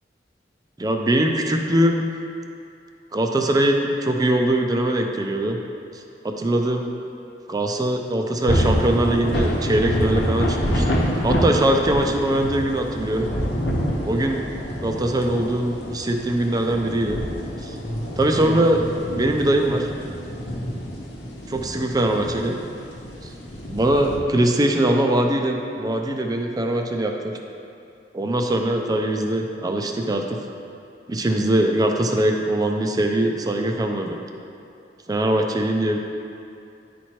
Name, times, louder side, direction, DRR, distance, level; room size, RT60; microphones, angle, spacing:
voice 1, 0.8-2.0 3.1-5.6 6.2-6.9 7.5-13.3 14.0-14.5 14.8-17.2 17.6-17.8 18.2-18.8 19.1-19.9 21.5-22.6 23.7-27.3 28.1-30.4 31.1-34.2 35.1-36.0, right 1 dB, 20° right, 3 dB, 0.5 m, -22 dB
sound 1, 8.5-24.2, equal, 85° left, 1.1 m, -27 dB
10.0 x 4.3 x 3.1 m, 2.6 s
head